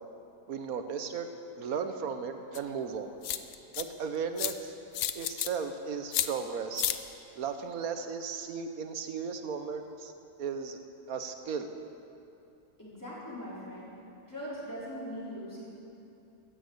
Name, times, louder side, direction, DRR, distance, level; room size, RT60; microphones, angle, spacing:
voice 1, 0.5-1.3 1.6-3.2 3.8-4.7 5.1-6.8 7.4-10.1 10.4-10.8 11.1-11.7, right 6 dB, 60° right, 7 dB, 1.3 m, -35 dB
sound 1, 2.5-2.6 3.2-3.8 4.4-4.5 4.9-5.5 6.1-6.3 6.8-7.0, left 12 dB, 65° left, 1.0 m, -30 dB
voice 2, 12.8-13.9 14.3-15.6, equal, 10° left, -8 dB, 4.2 m, -40 dB
14.5 x 9.6 x 8.0 m, 2.8 s
omnidirectional pair, 1.8 m